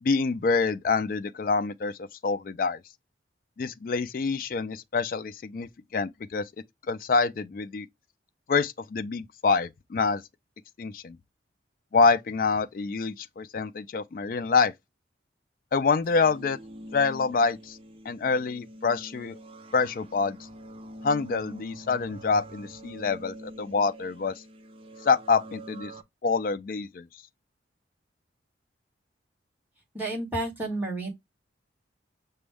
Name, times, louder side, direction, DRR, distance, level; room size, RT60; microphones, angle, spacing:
voice 1, 0.0-2.8 3.6-6.5 6.9-7.9 8.5-10.2 10.8-11.2 11.9-14.7 15.7-16.6 16.9-17.8 18.1-19.3 19.7-20.4 21.0-24.3 25.0-25.9 26.2-27.1, left 4 dB, 45° left, 0.3 m, -26 dB
sound 1, 16.0-26.0, equal, 30° right, 0.4 m, -45 dB
voice 2, 29.9-31.1, right 2 dB, 10° right, 1.4 m, -31 dB
6.0 x 2.2 x 3.3 m
head